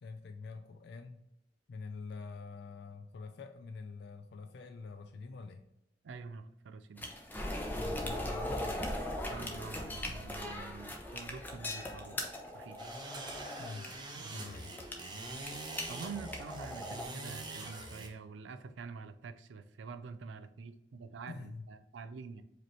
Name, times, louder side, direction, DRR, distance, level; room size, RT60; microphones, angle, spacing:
voice 1, 0.0-1.2 1.7-5.6 7.6-8.9 13.6-13.9 14.3-14.7 21.3-21.6, left 4 dB, 60° left, 5 dB, 0.4 m, -46 dB
voice 2, 6.0-7.1 9.3-12.2 12.5-12.8 14.1-14.5 15.8-22.4, right 4 dB, 80° right, 10 dB, 0.4 m, -46 dB
sound 1, 7.0-17.0, left 1 dB, 10° left, 0.6 m, -39 dB
sound 2, 12.8-18.1, right 2 dB, 25° right, 0.8 m, -44 dB
4.9 x 3.0 x 3.2 m, 0.82 s
head